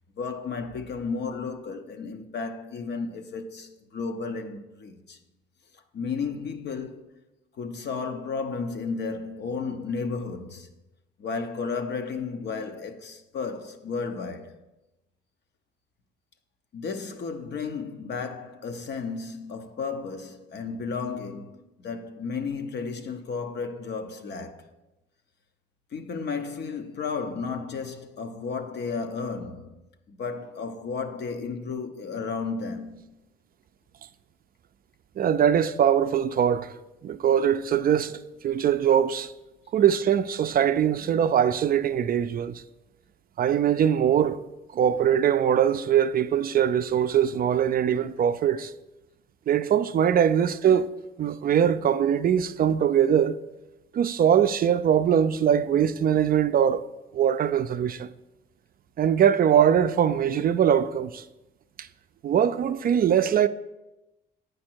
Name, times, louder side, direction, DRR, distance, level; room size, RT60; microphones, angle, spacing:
voice 1, 0.2-5.2 5.7-7.2 7.6-10.7 11.2-14.6 16.7-24.7 25.9-29.8 30.1-33.1 50.2-50.4, left 4 dB, 60° left, 0.8 m, -33 dB
voice 2, 35.2-36.7 37.0-38.2 38.4-39.3 39.7-42.6 43.4-44.4 44.7-48.7 49.5-50.9 51.2-53.4 53.9-56.8 57.1-58.1 59.0-61.2 61.8-61.9 62.2-63.5, right 9 dB, 50° right, 0.4 m, -22 dB
8.6 x 5.1 x 4.5 m
cardioid pair, 90°, 20 cm